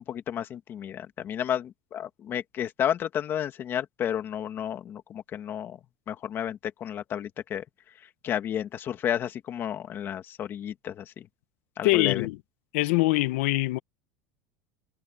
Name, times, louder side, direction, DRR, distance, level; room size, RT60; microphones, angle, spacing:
voice 1, 0.0-5.8 6.1-7.6 8.2-11.3 11.8-12.3, left 10 dB, 30° left, 1.8 m, -32 dB
voice 2, 11.8-12.4 12.7-13.8, left 20 dB, 70° left, 1.1 m, -23 dB
supercardioid pair, 160°, 8 cm